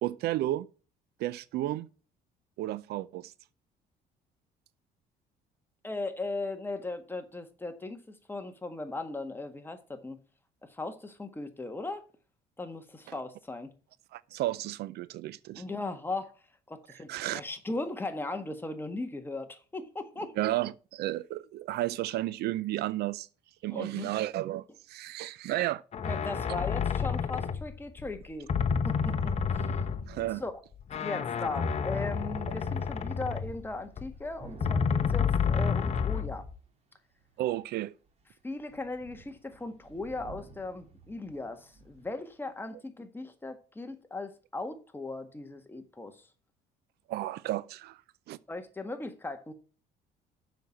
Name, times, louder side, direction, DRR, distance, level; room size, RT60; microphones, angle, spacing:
voice 1, 0.0-0.7 1.2-1.9 2.6-3.3 14.1-15.6 17.1-17.4 20.4-23.3 23.6-25.8 30.1-30.4 37.4-37.9 47.1-48.0 48.3-48.4, right 15 dB, 75° right, 0.5 m, -32 dB
voice 2, 5.8-10.2 10.6-12.0 12.6-13.7 15.5-16.3 16.7-20.4 23.7-24.1 26.0-28.5 28.8-29.2 29.5-29.7 30.4-30.5 31.0-36.5 38.4-46.2 48.5-49.5, left 2 dB, 10° left, 1.6 m, -38 dB
sound 1, 25.9-28.2 28.5-30.3 30.8-34.1 34.6-36.5, left 6 dB, 40° left, 1.0 m, -30 dB
Thunder / Rain, 31.9-32.1 32.3-36.5 37.2-37.6 38.1-38.2 38.5-42.2, right 3 dB, 40° right, 2.4 m, -52 dB
7.1 x 6.1 x 7.3 m
cardioid pair, 110°, 17 cm